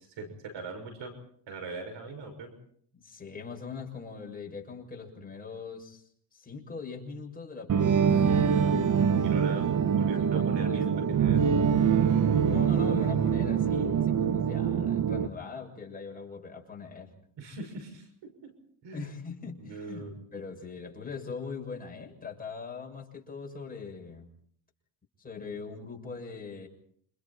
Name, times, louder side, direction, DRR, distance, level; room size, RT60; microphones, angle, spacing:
voice 1, 0.1-1.1 1.5-2.5 9.2-10.9 11.2-11.7 12.2-12.6 17.4-18.5 18.8-19.1 19.6-20.1, right 3 dB, 65° right, 6 dB, 6.4 m, -41 dB
voice 2, 2.9-8.3 9.5-9.6 10.0-10.8 12.4-17.1 18.9-24.3 25.2-26.7, left 5 dB, 20° left, 1 dB, 7.0 m, -41 dB
sound 1, 7.7-15.3, right 7 dB, 40° right, 1.3 m, -24 dB
29.5 x 27.5 x 4.4 m, 0.63 s
cardioid pair, 135°, 46 cm